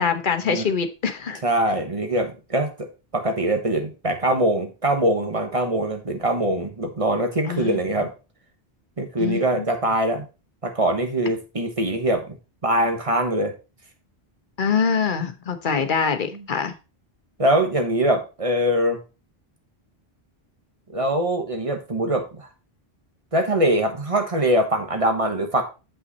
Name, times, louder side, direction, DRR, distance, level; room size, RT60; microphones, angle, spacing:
voice 1, 0.0-1.4 7.5-7.8 9.2-9.7 14.6-16.7, left 6 dB, 55° left, 8 dB, 1.1 m, -24 dB
voice 2, 1.4-8.1 9.0-10.3 10.6-12.4 12.6-13.5 16.3-16.4 17.4-19.0 20.9-22.5 23.3-25.6, right 1 dB, 35° right, 5 dB, 1.3 m, -23 dB
7.7 x 5.7 x 4.1 m, 0.30 s
omnidirectional pair, 1.1 m